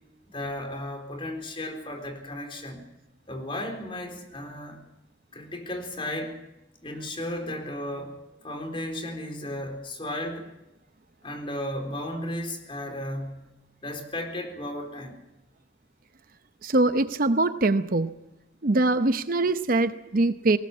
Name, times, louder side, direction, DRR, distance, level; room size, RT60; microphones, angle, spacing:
voice 1, 0.3-2.9 3.3-4.8 5.3-6.4 6.8-10.5 11.2-13.5 13.8-15.2, left 1 dB, 30° left, 4 dB, 4.0 m, -34 dB
voice 2, 16.6-18.1 18.6-20.6, right 2 dB, 55° right, 11 dB, 0.8 m, -23 dB
20.0 x 19.5 x 7.2 m, 0.91 s
head